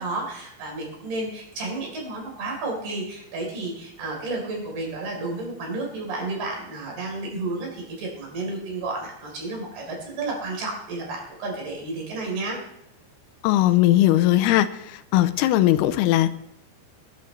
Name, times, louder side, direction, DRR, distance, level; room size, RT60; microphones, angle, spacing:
voice 1, 0.0-12.6, right 2 dB, 60° right, -1 dB, 5.9 m, -31 dB
voice 2, 13.4-14.7 15.1-16.3, left 14 dB, 80° left, 10 dB, 2.4 m, -18 dB
20.0 x 11.0 x 3.3 m, 0.78 s
omnidirectional pair, 5.1 m